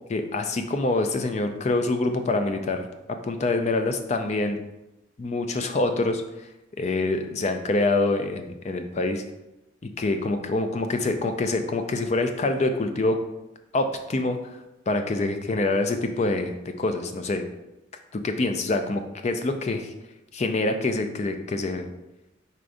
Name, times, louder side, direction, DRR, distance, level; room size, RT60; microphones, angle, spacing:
voice 1, 0.1-2.9 3.2-4.6 5.2-6.5 6.7-9.2 10.0-13.2 13.7-14.4 14.9-17.4 18.1-19.9 20.3-21.9, left 2 dB, 35° left, 7 dB, 0.4 m, -25 dB
4.9 x 4.3 x 2.6 m, 0.96 s
head